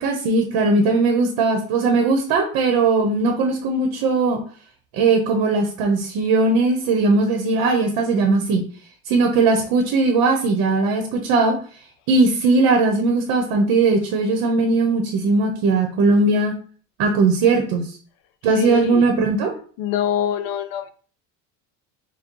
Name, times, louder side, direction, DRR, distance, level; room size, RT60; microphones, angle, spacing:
voice 1, 0.0-4.4 4.9-8.7 9.1-11.6 12.1-16.5 17.0-17.9 18.4-19.5, right 3 dB, 80° right, 3 dB, 1.0 m, -19 dB
voice 2, 18.5-19.1 19.8-20.9, left 9 dB, 70° left, 10 dB, 0.6 m, -24 dB
4.0 x 2.3 x 4.5 m, 0.43 s
cardioid pair, 135°, 36 cm